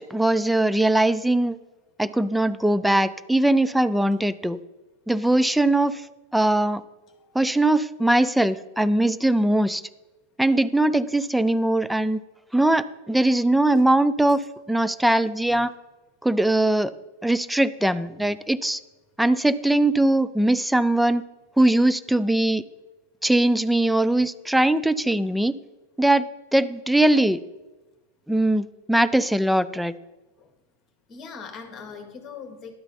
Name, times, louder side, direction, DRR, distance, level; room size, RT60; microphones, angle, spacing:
voice 1, 0.0-1.6 2.0-4.6 5.1-6.0 6.3-6.8 7.3-9.8 10.4-12.2 12.5-14.4 14.7-15.7 16.2-16.9 17.2-18.8 19.2-21.2 21.6-22.6 23.2-25.5 26.0-26.3 26.5-27.4 28.3-29.9, right 1 dB, ahead, 13 dB, 0.3 m, -21 dB
voice 2, 7.1-7.5 30.4-30.5 31.1-32.7, left 5 dB, 25° left, 5 dB, 1.5 m, -41 dB
11.5 x 3.9 x 5.6 m, 1.1 s
figure-of-eight pair, 90°, 0 cm